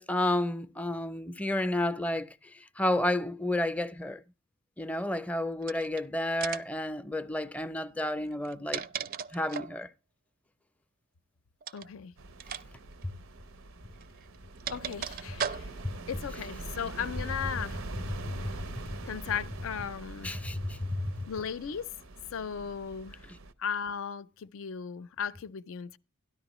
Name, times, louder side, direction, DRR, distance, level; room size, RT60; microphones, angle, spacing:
voice 1, 0.0-2.3 2.8-4.2 4.8-8.8 9.3-9.9 15.8-15.9 18.2-18.4 20.2-21.2, left 1 dB, 5° left, 0.5 m, -31 dB
sound 1, 5.6-6.0 6.4-6.8 8.3-9.8 11.6-11.9 12.4-12.6 12.9-13.0 14.0-15.9, right 7 dB, 45° right, 0.4 m, -37 dB
voice 2, 11.7-12.1 14.7-15.7 16.1-17.8 19.0-20.3 21.3-21.9 22.3-23.2 23.6-26.0, left 7 dB, 75° left, 0.5 m, -36 dB
sound 2, 12.2-23.5, right 2 dB, 85° right, 0.7 m, -43 dB
13.0 x 10.5 x 3.0 m
head